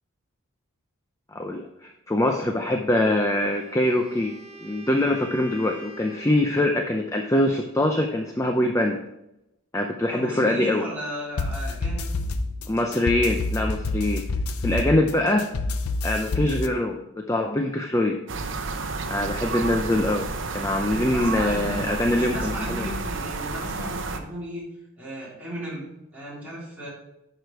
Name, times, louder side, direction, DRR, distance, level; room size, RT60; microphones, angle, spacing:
voice 1, 1.3-9.0 9.7-10.8 12.7-14.2 14.6-15.5 16.0-18.2 19.1-20.3 20.5-22.9, left 1 dB, 15° left, 4 dB, 0.5 m, -23 dB
Wind instrument woodwind instrument, 3.0-6.5, right 1 dB, 75° right, 1.8 m, -44 dB
voice 2, 10.1-12.2 20.8-21.8 22.1-24.7 25.0-25.8 26.1-26.9, equal, 5° right, -8 dB, 3.6 m, -35 dB
sound 1, 11.4-16.7, left 2 dB, 90° left, 0.7 m, -28 dB
sound 2, 18.3-24.2, right 3 dB, 55° right, 0.7 m, -31 dB
10.5 x 5.0 x 4.7 m, 0.88 s
head